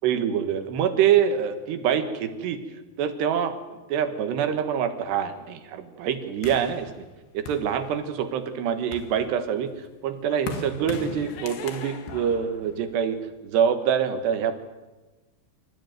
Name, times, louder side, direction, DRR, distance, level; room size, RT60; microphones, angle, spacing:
voice 1, 0.0-2.6 3.0-6.9 7.3-14.5, right 8 dB, 75° right, 8 dB, 3.5 m, -25 dB
sound 1, 6.4-8.3 8.7-13.4, left 5 dB, 75° left, 4.0 m, -39 dB
27.0 x 14.0 x 9.3 m, 1.2 s
omnidirectional pair, 5.1 m